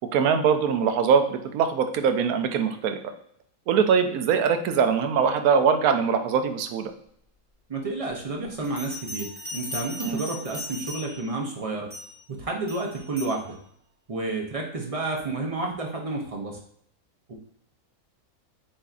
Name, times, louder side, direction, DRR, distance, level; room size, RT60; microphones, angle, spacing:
voice 1, 0.1-3.0 3.7-6.9 10.0-10.2, right 6 dB, 80° right, 7 dB, 1.1 m, -22 dB
voice 2, 7.7-11.9 12.3-13.6 14.1-16.6 17.3-17.4, right 2 dB, 50° right, 0 dB, 0.4 m, -30 dB
Bell, 8.6-11.3 11.9-12.2 12.7-13.4, left 2 dB, 35° left, 1.5 m, -38 dB
7.3 x 2.6 x 2.4 m, 0.67 s
omnidirectional pair, 1.5 m